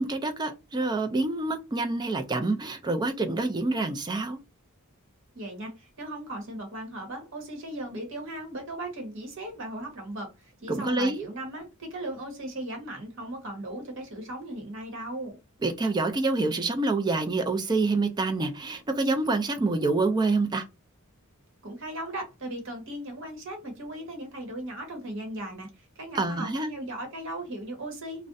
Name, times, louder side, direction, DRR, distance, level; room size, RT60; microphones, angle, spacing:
voice 1, 0.0-4.4 10.7-11.3 15.6-20.7 26.1-26.7, right 3 dB, 20° right, 0.4 m, -27 dB
voice 2, 5.3-15.3 21.6-28.3, right 1 dB, 60° right, 1.0 m, -37 dB
2.4 x 2.1 x 2.5 m
head